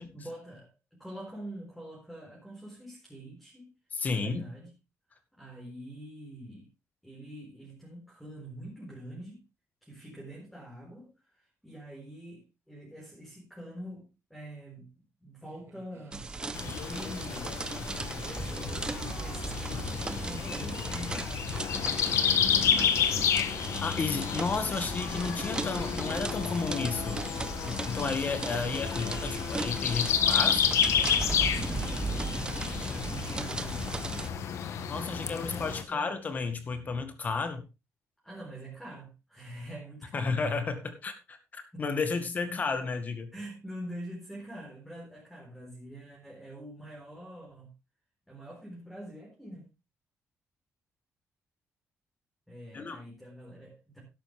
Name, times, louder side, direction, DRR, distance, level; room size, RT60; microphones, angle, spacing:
voice 1, 0.1-3.7 4.1-4.7 5.4-6.7 7.0-9.4 9.8-14.9 15.2-17.6 18.5-23.6 31.3-32.5 32.8-34.2 35.0-36.1 38.2-40.4 41.7-41.8 42.4-42.6 43.3-47.7 48.3-49.7 52.5-54.0, right 1 dB, ahead, -4 dB, 4.4 m, -45 dB
voice 2, 3.9-4.5 23.8-27.2 27.7-30.6 34.9-37.6 40.1-43.3 52.7-53.0, left 4 dB, 35° left, 9 dB, 2.0 m, -32 dB
sound 1, 15.5-21.1, right 7 dB, 55° right, 2.3 m, -52 dB
sound 2, 16.1-34.3, right 3 dB, 15° right, 0.8 m, -37 dB
sound 3, 16.5-35.8, left 8 dB, 70° left, 1.4 m, -31 dB
12.5 x 11.0 x 3.5 m, 0.27 s
cardioid pair, 155°, 5 cm